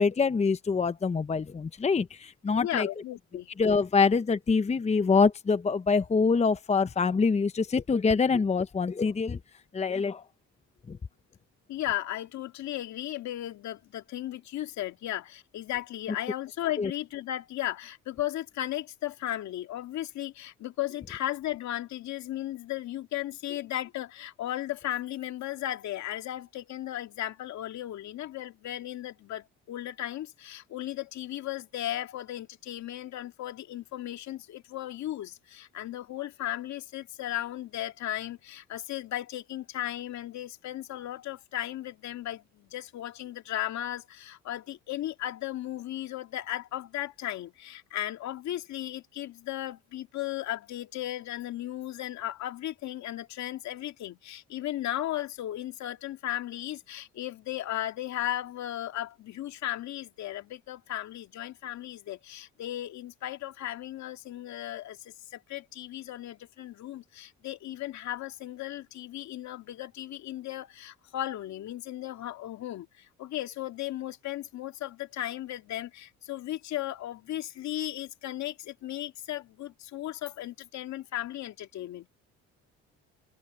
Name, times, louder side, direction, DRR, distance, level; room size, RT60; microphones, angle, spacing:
voice 1, 0.0-2.9 3.6-9.4 9.7-10.2 10.9-11.0 16.8-16.9, left 4 dB, 20° left, 0.9 m, -25 dB
voice 2, 2.6-3.5 11.7-82.1, left 13 dB, 70° left, 2.3 m, -36 dB
open air
supercardioid pair, 90°, 30 cm